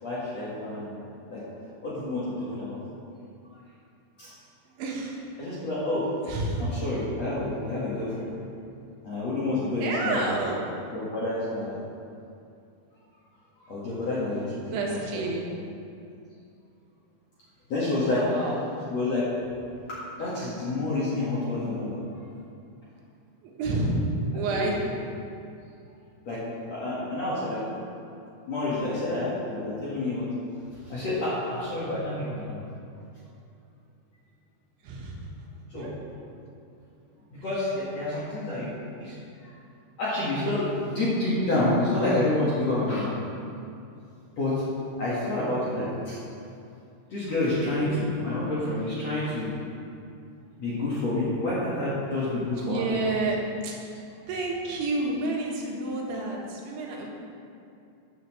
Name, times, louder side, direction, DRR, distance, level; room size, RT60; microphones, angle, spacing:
voice 1, 0.0-1.4 1.8-2.8 4.2-4.3 5.4-6.0 6.6-8.3 9.0-10.2 10.9-11.8 13.6-14.6 15.1-15.2 17.7-18.2 18.9-19.3 20.0-22.0 24.5-24.7 26.3-27.6 28.5-30.3 30.9-32.6 35.7-35.9 37.3-39.2 39.4-39.5 40.0-43.1 44.4-44.6 45.0-46.2 47.1-49.5 50.6-52.9, left 2 dB, 55° left, -9 dB, 2.0 m, -28 dB
voice 2, 4.7-5.2 6.3-6.7 9.7-10.7 14.7-15.5 18.1-18.7 23.4-24.1 24.3-24.8 34.8-35.5 35.7-35.9 38.3-38.4 47.7-48.0 52.6-53.4 53.6-54.0 54.3-57.1, right 2 dB, 80° right, -2 dB, 3.7 m, -30 dB
13.5 x 10.0 x 3.2 m, 2.6 s
omnidirectional pair, 5.3 m